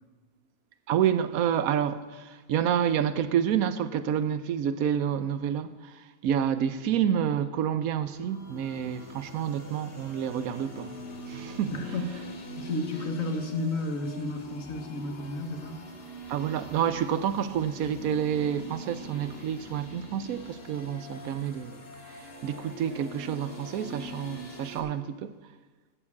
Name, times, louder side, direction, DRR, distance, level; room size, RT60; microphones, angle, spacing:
voice 1, 0.9-11.0 11.3-11.7 16.3-21.8 22.1-25.4, right 9 dB, 85° right, 1.1 m, -29 dB
sound 1, 7.9-24.8, equal, 45° left, 1.6 m, -43 dB
voice 2, 11.7-15.8, left 2 dB, 70° left, 1.7 m, -32 dB
14.0 x 4.9 x 8.4 m
omnidirectional pair, 1.5 m